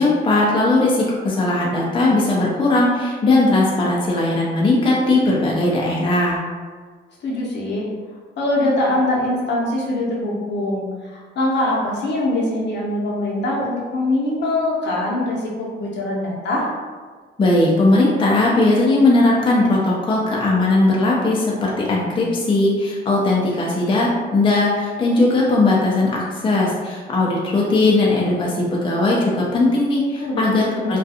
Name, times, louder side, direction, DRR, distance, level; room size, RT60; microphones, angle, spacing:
voice 1, 0.0-6.4 17.4-31.0, left 2 dB, 25° left, -4 dB, 0.5 m, -18 dB
voice 2, 7.2-7.9 8.4-16.6 30.2-31.0, left 1 dB, 60° left, -4 dB, 0.8 m, -23 dB
2.4 x 2.2 x 2.7 m, 1.5 s
cardioid pair, 90°, 20 cm